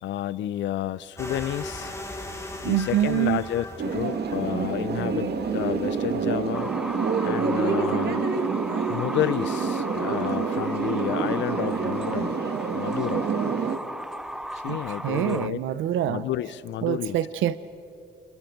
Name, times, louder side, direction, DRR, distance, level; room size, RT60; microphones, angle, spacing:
voice 1, 0.0-1.9 2.6-3.7 3.9-6.7 7.2-8.3 8.9-12.3 12.7-13.3 14.5-15.6 16.1-17.2, left 12 dB, 70° left, 17 dB, 0.6 m, -30 dB
sound 1, 1.2-7.4, left 1 dB, 15° left, 2.7 m, -39 dB
voice 2, 2.6-3.4 14.7-14.8 15.0-16.2 16.8-17.6, right 12 dB, 80° right, 14 dB, 0.6 m, -25 dB
sound 2, 3.8-13.8, right 5 dB, 55° right, 1.7 m, -27 dB
sound 3, 6.5-15.5, right 1 dB, 5° right, 0.5 m, -36 dB
30.0 x 27.5 x 4.5 m, 2.8 s
cardioid pair, 90°, 20 cm